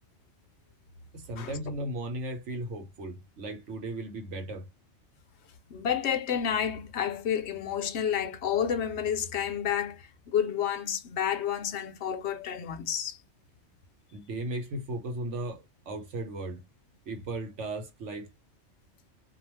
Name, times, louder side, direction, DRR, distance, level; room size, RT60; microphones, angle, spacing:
voice 1, 1.1-4.7 14.1-16.7 17.1-18.3, right 1 dB, 85° right, 1.2 m, -36 dB
voice 2, 5.7-13.2, left 8 dB, 70° left, 0.8 m, -30 dB
2.5 x 2.3 x 3.1 m
omnidirectional pair, 1.2 m